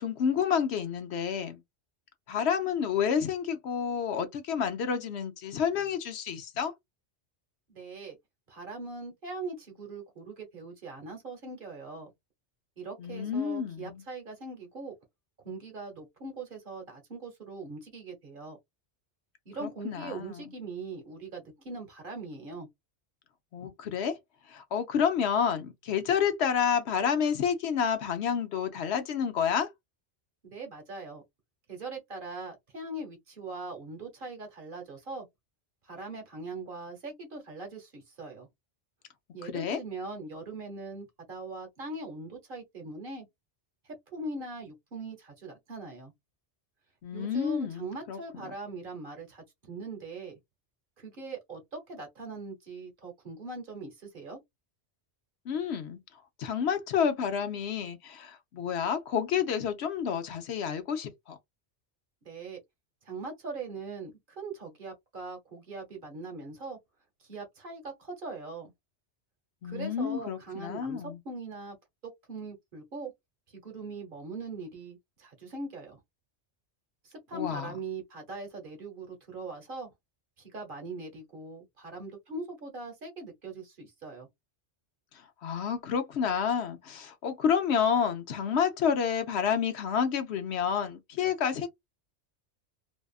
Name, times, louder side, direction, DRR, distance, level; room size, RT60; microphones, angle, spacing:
voice 1, 0.0-1.6 2.3-6.7 13.0-14.0 19.6-20.5 23.5-24.2 24.5-29.7 39.4-39.8 47.0-48.2 55.5-61.4 69.6-71.2 77.3-77.7 85.1-91.7, left 7 dB, 70° left, 0.9 m, -29 dB
voice 2, 7.7-8.2 8.5-12.1 12.8-14.9 15.4-18.6 19.5-22.7 30.4-31.2 31.7-35.3 35.8-38.5 39.3-43.3 43.9-46.1 47.1-50.4 51.0-54.4 62.2-62.6 63.1-66.8 67.2-68.7 69.6-71.8 72.0-73.1 73.5-76.0 77.0-79.9 80.4-84.3, right 3 dB, 50° right, 1.1 m, -41 dB
2.7 x 2.4 x 2.3 m
omnidirectional pair, 1.2 m